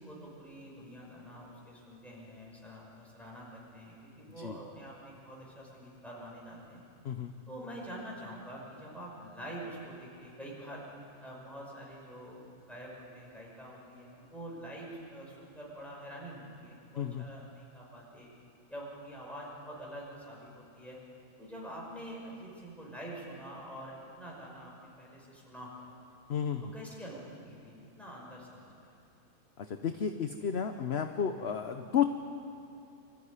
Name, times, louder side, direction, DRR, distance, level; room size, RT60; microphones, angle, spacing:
voice 1, 0.0-6.8 7.5-10.9 11.2-18.3 18.7-21.0 21.4-25.9 26.7-29.0, equal, ahead, -4 dB, 5.7 m, -46 dB
voice 2, 26.3-26.7 29.6-32.1, left 8 dB, 50° left, 7 dB, 1.0 m, -32 dB
24.5 x 14.0 x 9.7 m, 2.7 s
omnidirectional pair, 1.5 m